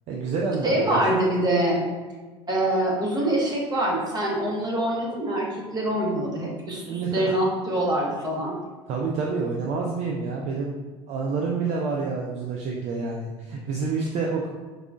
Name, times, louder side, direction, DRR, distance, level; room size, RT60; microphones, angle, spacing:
voice 1, 0.1-1.1 6.7-7.4 8.9-10.7 11.1-14.5, right 4 dB, 50° right, -1 dB, 0.5 m, -28 dB
voice 2, 0.6-1.9 2.5-8.5, right 1 dB, 25° right, -2 dB, 1.1 m, -24 dB
4.7 x 2.3 x 2.5 m, 1.4 s
hypercardioid pair, 80°, 15 cm